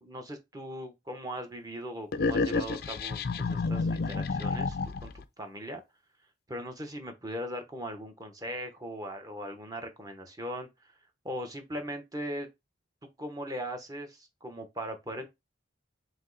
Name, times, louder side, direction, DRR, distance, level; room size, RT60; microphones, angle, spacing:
voice 1, 0.0-5.1 5.4-5.8 6.5-10.9 11.2-12.5 13.2-15.3, equal, 20° right, 0.8 m, -39 dB
sound 1, 2.1-5.2, left 4 dB, 50° left, 0.4 m, -30 dB
5.2 x 2.0 x 3.9 m
head